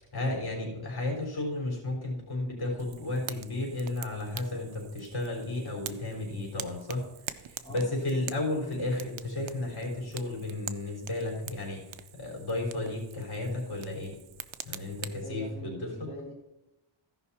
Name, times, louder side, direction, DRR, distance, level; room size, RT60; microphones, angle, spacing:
voice 1, 0.0-14.2 14.6-16.1, left 2 dB, 50° left, 0 dB, 4.2 m, -33 dB
Fire, 2.8-15.2, right 10 dB, 70° right, 0.7 m, -45 dB
voice 2, 7.6-8.4 15.2-16.3, equal, 10° left, -2 dB, 1.5 m, -44 dB
15.0 x 5.6 x 4.3 m, 0.94 s
wide cardioid pair, 125°, 49 cm